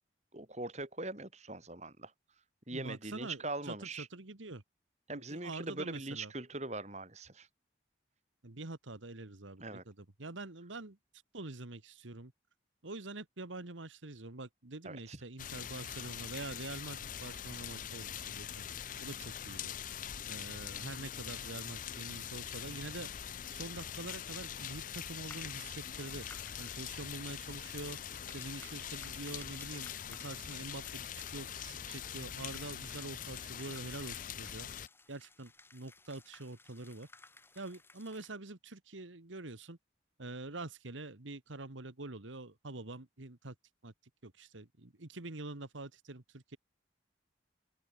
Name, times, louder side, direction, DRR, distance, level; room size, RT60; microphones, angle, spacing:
voice 1, 0.3-2.1 2.7-4.1 5.1-7.5 9.6-9.8 14.8-15.2, right 2 dB, 35° right, 3.1 m, -41 dB
voice 2, 2.7-4.6 5.1-6.3 8.4-11.0 11.3-12.3 12.8-18.7 19.0-19.7 20.3-23.1 23.5-26.3 26.6-28.0 28.3-31.0 31.3-34.7 35.1-37.1 37.6-39.8 40.2-43.6 43.8-43.9 44.2-46.6, right 2 dB, 85° right, 1.8 m, -45 dB
sound 1, 15.4-34.9, left 9 dB, 45° left, 0.5 m, -43 dB
sound 2, 25.3-38.4, left 3 dB, 10° left, 5.1 m, -58 dB
open air
head